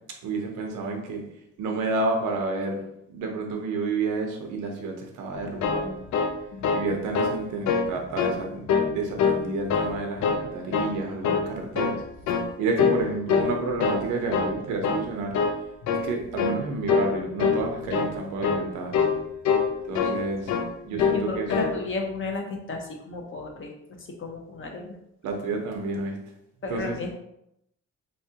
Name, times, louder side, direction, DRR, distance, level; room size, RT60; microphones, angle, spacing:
voice 1, 0.2-1.2 1.6-2.8 3.1-6.0 6.7-12.0 12.6-15.3 15.9-19.0 19.9-20.5 20.8-21.5 25.2-26.2 26.7-27.0, right 3 dB, 90° right, 2 dB, 0.8 m, -30 dB
sound 1, 5.4-6.9 7.1-7.4 7.6-8.3 8.7-9.4 9.7-10.4 10.7-11.0 11.2-12.0 12.3-12.5 12.8-13.0 13.3-14.0 14.3-14.5 14.8-15.1 15.3-15.6 15.8-16.1 16.4-16.6 16.9-17.1 17.4-17.6 17.9-18.1 18.4-18.7 18.9-19.2 19.4-20.2 20.5-20.7 21.0-21.2 21.5-21.7, left 6 dB, 70° left, 0.5 m, -24 dB
voice 2, 20.9-23.7 24.2-24.9 26.6-27.2, left 3 dB, 45° left, 2 dB, 0.8 m, -33 dB
3.4 x 3.1 x 2.8 m, 0.80 s
cardioid pair, 90°, 30 cm